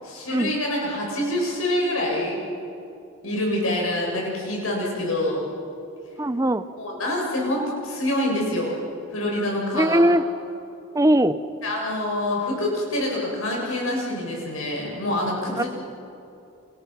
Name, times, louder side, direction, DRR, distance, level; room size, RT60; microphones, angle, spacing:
voice 1, 0.0-2.4 3.2-5.4 6.8-8.8 9.1-10.1 11.6-15.7, left 1 dB, 90° left, -2 dB, 7.5 m, -26 dB
voice 2, 6.2-6.6 9.7-10.2 10.9-11.4 15.6-15.7, right 1 dB, 15° right, 12 dB, 0.7 m, -20 dB
30.0 x 27.5 x 6.0 m, 2.7 s
head